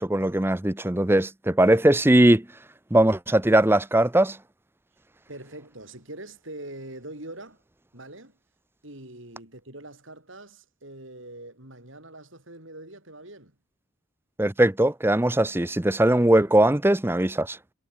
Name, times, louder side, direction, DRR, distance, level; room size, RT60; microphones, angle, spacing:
voice 1, 0.0-2.5 2.9-4.4 14.4-17.6, right 1 dB, 10° right, 0.6 m, -20 dB
voice 2, 5.3-7.6 7.9-8.4 8.8-13.5, right 1 dB, 65° right, 7.4 m, -43 dB
head